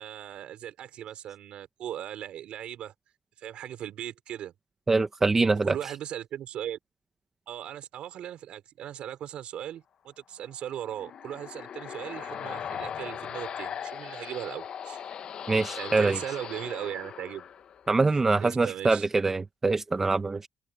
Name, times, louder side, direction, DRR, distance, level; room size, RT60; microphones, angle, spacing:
voice 1, 0.0-2.9 3.4-4.5 5.6-6.8 7.5-15.0 15.8-17.5 18.4-19.1, right 11 dB, 65° right, 4.4 m, -38 dB
voice 2, 4.9-5.7 15.5-16.2 17.9-20.5, right 3 dB, 15° right, 0.9 m, -24 dB
sound 1, 10.5-18.1, left 8 dB, 45° left, 0.9 m, -39 dB
open air
cardioid pair, 150°, 2 cm